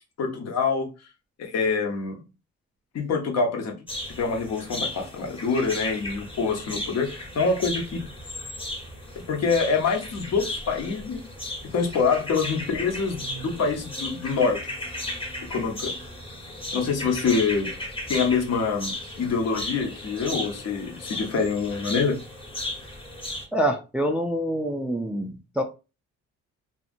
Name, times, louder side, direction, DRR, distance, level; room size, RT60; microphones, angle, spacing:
voice 1, 0.2-0.9 1.4-2.2 2.9-3.7 4.2-8.0 9.1-11.2 11.6-14.7 15.5-15.9 16.7-22.2, left 4 dB, 60° left, 2 dB, 0.9 m, -25 dB
sound 1, 3.9-23.5, left 1 dB, 20° left, 1.0 m, -35 dB
voice 2, 23.5-25.6, right 1 dB, 5° right, 3 dB, 0.3 m, -26 dB
2.7 x 2.6 x 2.5 m, 0.29 s
cardioid pair, 90°, 30 cm